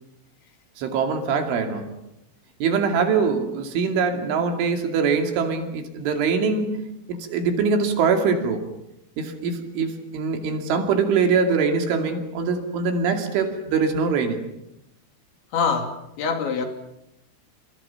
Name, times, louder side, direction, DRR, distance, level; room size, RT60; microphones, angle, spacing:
voice 1, 0.8-2.0 2.6-8.7 9.2-14.4, right 5 dB, 70° right, 5 dB, 4.9 m, -23 dB
voice 2, 15.5-16.7, left 5 dB, 65° left, 5 dB, 4.9 m, -24 dB
29.5 x 28.0 x 5.9 m, 0.83 s
omnidirectional pair, 5.9 m